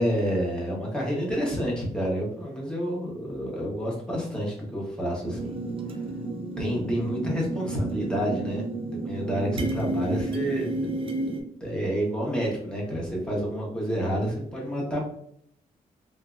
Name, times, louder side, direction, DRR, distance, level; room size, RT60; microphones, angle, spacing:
voice 1, 0.0-5.5 6.6-10.9 11.6-15.0, equal, 5° left, -4 dB, 1.0 m, -29 dB
sound 1, 5.2-11.4, right 2 dB, 35° right, 0.4 m, -31 dB
3.5 x 2.7 x 2.4 m, 0.68 s
cardioid pair, 155°, 15 cm